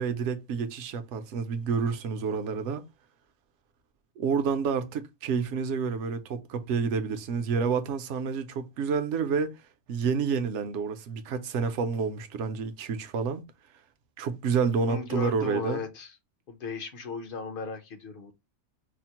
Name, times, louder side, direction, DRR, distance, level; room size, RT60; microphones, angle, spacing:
voice 1, 0.0-2.8 4.2-9.6 9.9-13.4 14.2-15.8, right 5 dB, 65° right, 0.8 m, -29 dB
voice 2, 14.9-16.1 16.5-18.3, left 4 dB, 50° left, 0.7 m, -36 dB
4.9 x 2.0 x 2.8 m
omnidirectional pair, 1.5 m